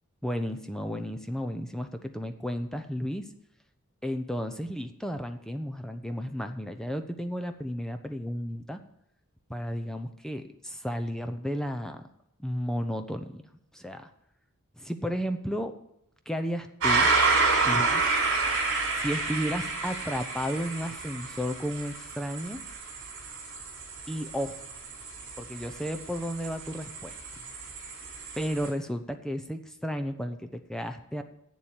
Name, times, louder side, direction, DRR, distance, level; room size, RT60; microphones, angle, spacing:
voice 1, 0.2-3.3 4.0-8.8 9.5-12.0 12.4-13.4 13.7-14.1 14.8-15.7 16.3-17.1 17.6-18.1 18.9-22.6 24.1-24.6 25.4-27.2 28.4-31.2, equal, 5° left, 7 dB, 0.7 m, -33 dB
sound 1, 16.8-28.7, right 3 dB, 60° right, 4.2 m, -29 dB
8.3 x 7.4 x 8.7 m, 0.82 s
head